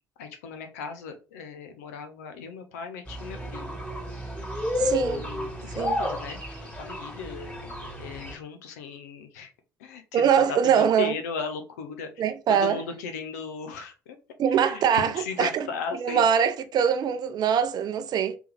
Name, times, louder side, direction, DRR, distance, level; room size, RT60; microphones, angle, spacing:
voice 1, 0.2-3.8 4.8-7.5 8.0-9.5 9.8-14.2 14.6-16.2, left 5 dB, 85° left, 0.6 m, -37 dB
sound 1, 3.1-8.3, left 1 dB, 15° left, 1.9 m, -32 dB
voice 2, 4.7-5.3 5.8-6.0 10.1-11.1 12.2-12.8 14.4-15.7 16.0-18.4, right 8 dB, 55° right, 0.5 m, -23 dB
3.4 x 3.1 x 3.2 m
hypercardioid pair, 55°, 8 cm